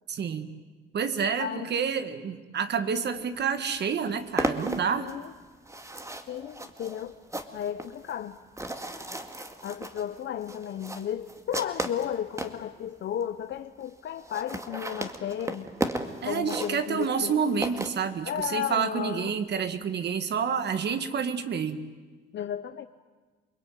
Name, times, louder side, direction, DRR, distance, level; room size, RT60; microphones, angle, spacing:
voice 1, 0.1-0.5 0.9-5.1 16.2-21.8, right 6 dB, 60° right, 10 dB, 1.9 m, -29 dB
voice 2, 1.3-1.7 5.0-5.3 6.3-7.1 7.5-8.4 9.6-15.7 16.2-17.6 18.2-19.3 22.3-22.9, left 10 dB, 65° left, 8 dB, 1.0 m, -34 dB
sound 1, 3.4-3.5 3.7-12.6 13.2-13.3 13.5-13.6 13.8-13.9 14.1-18.5, right 1 dB, 15° right, 2.1 m, -35 dB
28.5 x 21.0 x 9.2 m, 1.3 s
cardioid pair, 90°, 20 cm